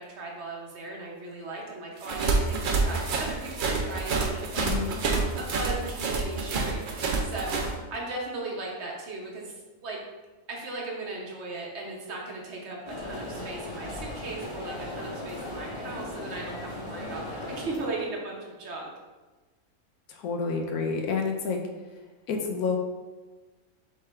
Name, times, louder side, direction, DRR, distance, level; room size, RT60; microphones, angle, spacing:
voice 1, 0.0-4.7 5.3-10.0 10.5-18.9, right 2 dB, 50° right, -2 dB, 1.1 m, -37 dB
sound 1, 2.0-7.7, right 4 dB, 75° right, 0.4 m, -28 dB
voice 2, 4.5-5.0 20.1-21.6 22.3-22.8, left 5 dB, 85° left, 2 dB, 1.2 m, -29 dB
sound 2, 12.9-17.9, left 1 dB, 35° left, 1.2 m, -37 dB
3.6 x 3.2 x 4.3 m, 1.2 s
omnidirectional pair, 1.6 m